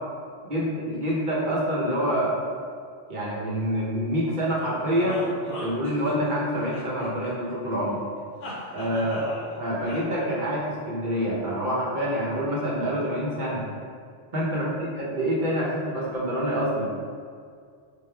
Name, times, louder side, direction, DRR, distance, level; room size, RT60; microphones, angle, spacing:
voice 1, 0.5-2.4 3.1-5.2 5.6-8.0 8.7-9.2 9.6-13.7 14.3-16.9, equal, 50° right, -6 dB, 0.9 m, -26 dB
sound 1, 4.6-6.4 6.7-7.8 8.4-9.6 9.9-10.0, left 1 dB, 70° left, 1.0 m, -37 dB
4.0 x 3.3 x 2.3 m, 2.1 s
omnidirectional pair, 1.2 m